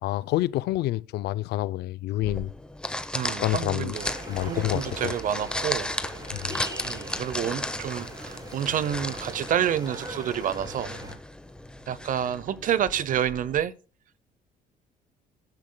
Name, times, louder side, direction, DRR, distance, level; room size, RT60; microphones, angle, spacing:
voice 1, 0.0-2.5 3.2-4.0 4.3-5.1 6.3-6.6, left 15 dB, 75° left, 0.5 m, -28 dB
sound 1, 2.2-13.6, left 1 dB, 5° left, 0.8 m, -35 dB
voice 2, 3.1-4.1 4.4-5.9 6.4-10.9 11.9-13.7, right 9 dB, 50° right, 0.7 m, -29 dB
sound 2, 3.9-11.1, right 1 dB, 25° right, 6.1 m, -40 dB
17.0 x 10.5 x 2.2 m
cardioid pair, 110°, 17 cm